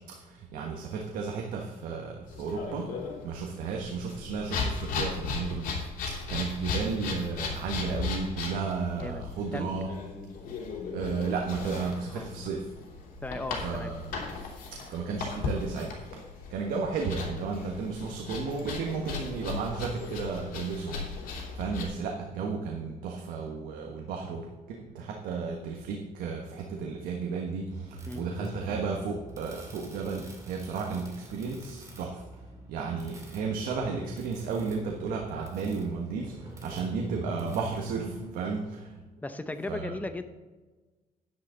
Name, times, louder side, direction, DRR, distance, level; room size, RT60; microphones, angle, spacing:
voice 1, 0.0-5.8 6.1-9.9 10.9-12.7 13.6-14.1 14.7-16.2 16.5-32.4 32.7-39.0 39.7-39.9, right 5 dB, 85° right, 1 dB, 1.4 m, -33 dB
sound 1, 2.3-21.8, left 4 dB, 90° left, 3.3 m, -37 dB
voice 2, 9.0-9.8 12.1-12.4 13.2-13.9 28.1-28.2 39.2-40.2, left 2 dB, 10° left, 9 dB, 0.8 m, -37 dB
sound 2, 27.7-38.3, right 1 dB, 20° right, 2.4 m, -44 dB
10.5 x 10.0 x 3.9 m, 1.3 s
cardioid pair, 140°, 14 cm